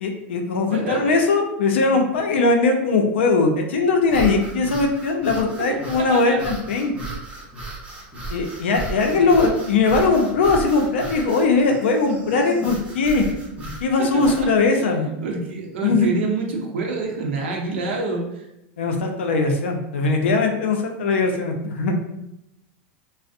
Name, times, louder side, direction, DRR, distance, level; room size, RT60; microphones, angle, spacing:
voice 1, 0.0-6.9 8.3-13.2 13.8-15.1 15.8-16.1 18.8-22.0, left 3 dB, 90° left, 3 dB, 0.4 m, -20 dB
voice 2, 0.7-1.2 5.7-6.4 8.3-8.7 9.0-9.5 14.0-14.5 14.8-18.5, right 3 dB, 85° right, 0 dB, 0.6 m, -28 dB
sound 1, 4.1-14.5, right 2 dB, 20° right, 0.7 m, -34 dB
2.5 x 2.0 x 2.4 m, 0.85 s
supercardioid pair, 125°, 6 cm